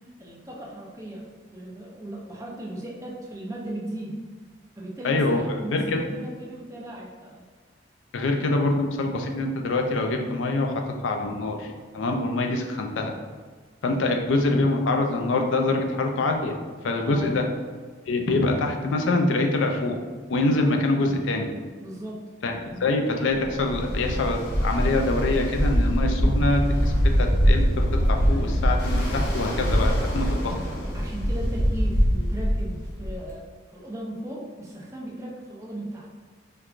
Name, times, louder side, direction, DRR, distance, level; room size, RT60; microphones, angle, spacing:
voice 1, 0.2-1.3 1.5-4.2 4.7-7.4 17.1-17.3 21.8-22.2 22.7-22.8 30.9-36.1, right 1 dB, 15° right, -4 dB, 0.5 m, -37 dB
voice 2, 5.0-6.0 8.1-13.1 13.8-16.6 16.8-17.4 18.1-20.0 20.3-21.5 22.4-30.6, left 2 dB, 85° left, 3 dB, 0.4 m, -25 dB
Ocean, 23.4-33.3, equal, 70° left, 0.8 m, -23 dB
4.6 x 2.3 x 2.4 m, 1.5 s
head